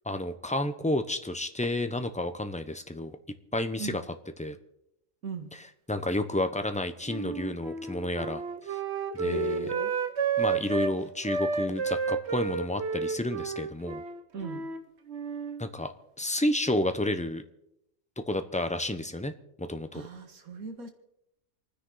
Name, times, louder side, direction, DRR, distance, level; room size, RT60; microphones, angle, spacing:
voice 1, 0.1-3.2 3.5-4.0 4.4-4.6 5.5-8.4 8.7-8.8 9.1-9.7 10.4-14.0 15.6-15.9 16.2-17.4 18.3-19.3 19.6-20.1, left 1 dB, 5° left, 8 dB, 0.7 m, -31 dB
Wind instrument woodwind instrument, 7.1-10.9 11.2-14.8 15.1-15.6, right 5 dB, 55° right, 1.3 m, -31 dB
voice 2, 9.2-9.9 14.3-14.7 19.9-20.9, right 4 dB, 85° right, 6 dB, 2.2 m, -36 dB
28.5 x 10.0 x 4.0 m, 0.81 s
omnidirectional pair, 1.5 m